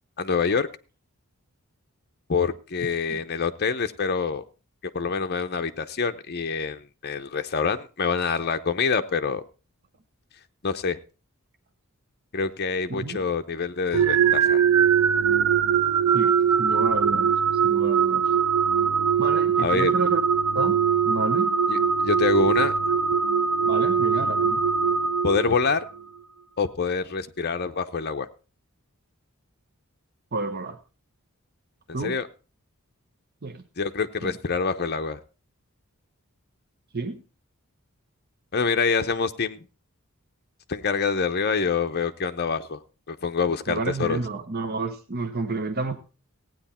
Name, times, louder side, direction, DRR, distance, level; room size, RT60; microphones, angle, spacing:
voice 1, 0.2-0.7 2.3-4.4 4.9-9.4 10.6-11.0 12.3-14.6 19.6-19.9 21.7-22.7 25.2-25.8 26.6-28.3 32.0-32.3 33.8-35.2 38.5-39.7 40.7-42.8 43.1-44.2, left 5 dB, 45° left, 8 dB, 0.8 m, -26 dB
voice 2, 12.9-13.2 16.1-17.3 17.6-18.3 19.2-20.2 20.5-20.8 21.0-21.5 23.6-24.6 30.3-30.8 31.9-32.2 33.4-33.6 34.2-34.4 36.9-37.2 43.7-46.0, right 3 dB, 45° right, 5 dB, 0.9 m, -30 dB
sound 1, 13.9-25.9, right 7 dB, 90° right, 0.6 m, -22 dB
16.0 x 9.2 x 4.3 m, 0.34 s
head